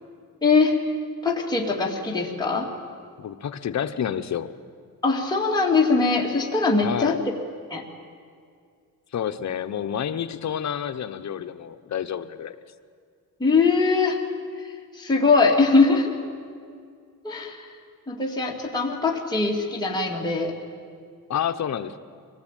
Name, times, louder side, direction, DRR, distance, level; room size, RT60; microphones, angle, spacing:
voice 1, 0.4-0.8 1.2-2.7 5.0-7.1 7.7-7.8 13.4-14.2 14.6-14.7 14.9-16.2 17.2-17.7 18.1-20.5, left 4 dB, 10° left, -2 dB, 2.4 m, -21 dB
voice 2, 3.2-4.5 6.8-7.2 9.1-12.6 21.3-22.0, left 9 dB, 50° left, 9 dB, 0.9 m, -29 dB
24.0 x 19.0 x 9.1 m, 2.2 s
wide cardioid pair, 150°, 35 cm